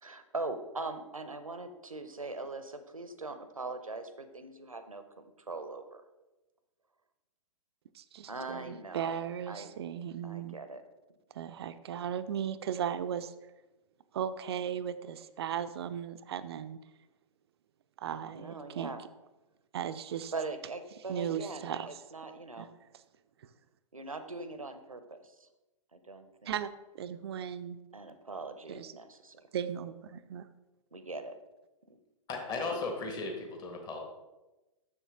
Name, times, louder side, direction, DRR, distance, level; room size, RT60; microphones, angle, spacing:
voice 1, 0.0-6.0 8.3-9.7 10.2-10.8 18.3-19.0 20.3-22.8 23.9-25.5 25.9-26.5 27.9-29.4 30.9-31.4 31.9-32.0, right 3 dB, 85° right, 10 dB, 0.7 m, -41 dB
voice 2, 8.0-10.6 11.3-13.3 14.1-16.8 18.0-18.9 19.7-20.3 21.1-21.9 22.6-22.7 26.5-26.7 27.0-27.8 28.7-28.9 29.5-30.4, right 9 dB, 50° right, 13 dB, 0.4 m, -36 dB
voice 3, 32.3-34.0, left 3 dB, 25° left, 2 dB, 1.4 m, -36 dB
7.2 x 6.6 x 3.6 m, 1.1 s
figure-of-eight pair, 115°, 17 cm